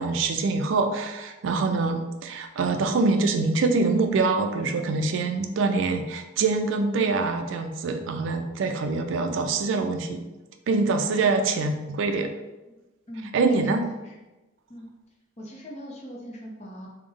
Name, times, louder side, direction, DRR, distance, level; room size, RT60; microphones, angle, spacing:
voice 1, 0.0-10.2 10.7-12.3 13.3-13.8, right 3 dB, 70° right, 6 dB, 0.3 m, -24 dB
voice 2, 13.1-14.1 14.7-14.9 15.4-16.9, equal, 35° left, -2 dB, 0.6 m, -41 dB
3.3 x 2.1 x 3.4 m, 1.1 s
head